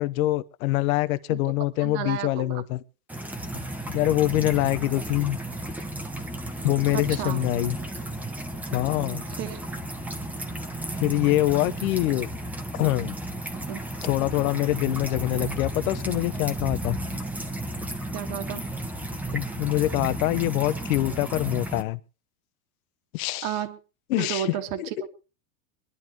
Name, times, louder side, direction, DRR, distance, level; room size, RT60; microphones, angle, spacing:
voice 1, 0.0-2.8 3.9-5.4 6.6-7.8 8.7-9.2 11.0-12.3 12.7-13.2 14.0-17.0 19.3-22.0 23.1-23.5 24.1-24.5 24.8-24.9, left 16 dB, 75° left, 1.0 m, -25 dB
voice 2, 1.8-2.6 6.9-7.4 9.4-9.6 13.7-13.8 18.1-18.7 23.4-23.8 24.2-25.1, right 11 dB, 50° right, 1.7 m, -32 dB
sound 1, 3.1-21.8, right 1 dB, 5° right, 1.1 m, -33 dB
25.0 x 11.0 x 3.0 m
supercardioid pair, 150°, 42 cm